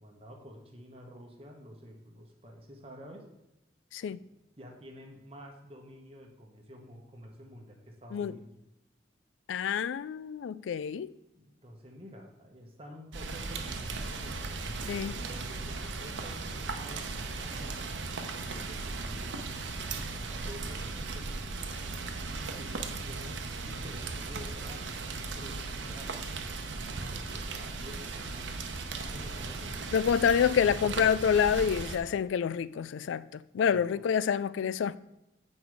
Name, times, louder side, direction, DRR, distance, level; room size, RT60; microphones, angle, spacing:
voice 1, 0.0-3.2 4.1-4.3 4.6-8.5 11.3-17.8 18.5-19.3 20.1-21.6 22.2-23.4 23.6-26.1 26.8-28.5 29.0-29.9 33.5-34.0, equal, 30° right, 1.1 m, -49 dB
voice 2, 9.5-11.1 14.9-15.1 29.9-35.0, left 7 dB, 85° left, 0.3 m, -27 dB
Rain, 13.1-32.0, right 3 dB, 85° right, 0.8 m, -37 dB
8.1 x 5.3 x 4.7 m
head